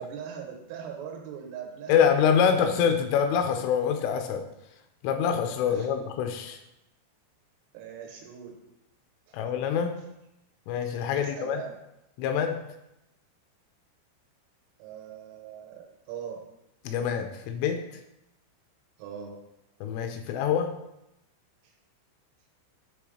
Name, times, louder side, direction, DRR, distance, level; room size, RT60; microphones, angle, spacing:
voice 1, 0.0-2.9 5.7-5.9 7.7-8.6 9.3-9.4 11.2-11.8 14.8-16.4 19.0-19.4 21.6-21.7, right 7 dB, 90° right, 0 dB, 3.6 m, -41 dB
voice 2, 1.9-4.4 5.0-6.6 9.3-9.9 10.7-11.6 12.2-12.6 16.8-17.8 19.8-20.7, left 7 dB, 80° left, 6 dB, 3.0 m, -25 dB
10.0 x 3.6 x 4.9 m, 0.87 s
omnidirectional pair, 5.9 m